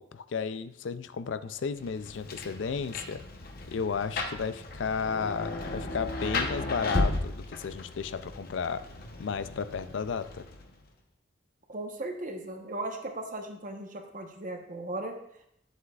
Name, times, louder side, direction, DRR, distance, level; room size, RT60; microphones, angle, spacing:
voice 1, 0.0-3.2 3.7-8.8 9.2-10.5, left 6 dB, 80° left, 13 dB, 0.4 m, -33 dB
Rain, 1.8-10.8, left 2 dB, 55° left, 0.9 m, -35 dB
voice 2, 11.7-15.1, right 2 dB, 45° right, 3 dB, 1.0 m, -37 dB
10.5 x 8.0 x 2.4 m, 0.76 s
head